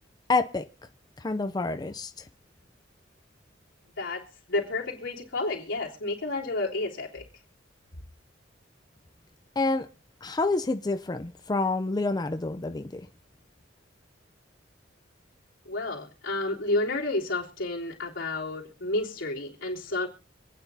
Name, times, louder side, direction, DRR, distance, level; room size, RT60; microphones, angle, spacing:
voice 1, 0.3-0.6 1.2-2.1 9.6-9.9 10.2-13.1, left 3 dB, 20° left, 0.5 m, -28 dB
voice 2, 4.0-7.2 15.6-20.1, left 2 dB, 85° left, 3.5 m, -31 dB
26.0 x 9.4 x 2.7 m
head